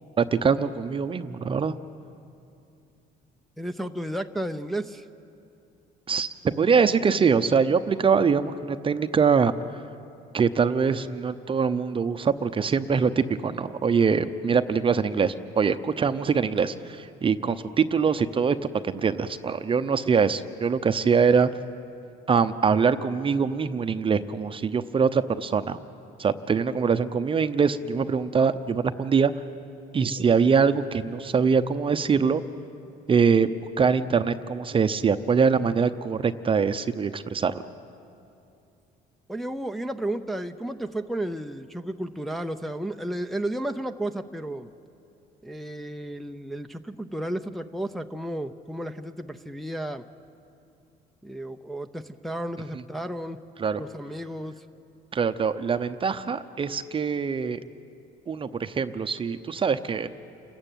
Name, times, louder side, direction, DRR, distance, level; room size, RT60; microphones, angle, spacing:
voice 1, 0.2-1.8 6.1-9.9 10.3-21.5 22.3-25.8 26.2-29.3 29.9-32.4 33.1-33.5 33.8-37.6 52.7-52.8 53.6-53.8 55.1-57.6 58.3-60.1, right 6 dB, 30° right, 10 dB, 0.8 m, -23 dB
voice 2, 3.6-5.0 39.3-44.7 45.4-50.0 51.2-53.4 53.8-54.5, right 1 dB, ahead, 5 dB, 0.7 m, -33 dB
28.5 x 15.0 x 9.1 m, 2.6 s
cardioid pair, 110°, 17 cm